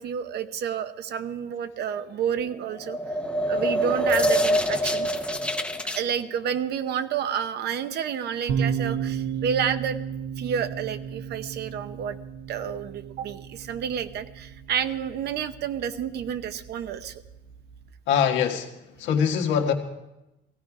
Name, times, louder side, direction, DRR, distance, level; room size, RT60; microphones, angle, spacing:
voice 1, 0.0-3.0 3.5-5.1 5.9-10.0 10.4-12.2 12.5-17.2, right 8 dB, 60° right, 11 dB, 0.8 m, -30 dB
sound 1, 2.7-6.0, equal, 5° left, 0.7 m, -25 dB
sound 2, 8.5-17.9, right 7 dB, 75° right, 1.2 m, -34 dB
voice 2, 18.1-18.7 19.0-19.7, left 7 dB, 90° left, 2 dB, 1.7 m, -23 dB
16.5 x 16.0 x 4.9 m, 0.95 s
cardioid pair, 165°, 19 cm